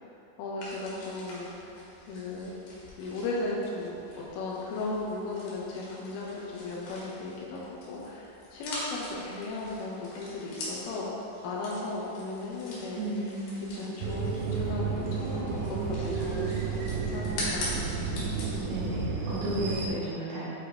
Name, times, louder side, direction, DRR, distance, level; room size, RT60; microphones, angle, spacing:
voice 1, 0.4-1.7 2.1-2.5 3.0-11.1 11.4-13.1 13.7-17.7, left 2 dB, 80° left, -4 dB, 3.7 m, -36 dB
sound 1, 0.6-18.7, left 1 dB, 60° left, 2.8 m, -43 dB
voice 2, 13.0-13.8 18.6-20.4, right 1 dB, 70° right, -9 dB, 4.2 m, -33 dB
sound 2, 14.0-19.9, right 5 dB, 90° right, 3.3 m, -31 dB
9.8 x 5.6 x 3.2 m, 2.8 s
omnidirectional pair, 5.9 m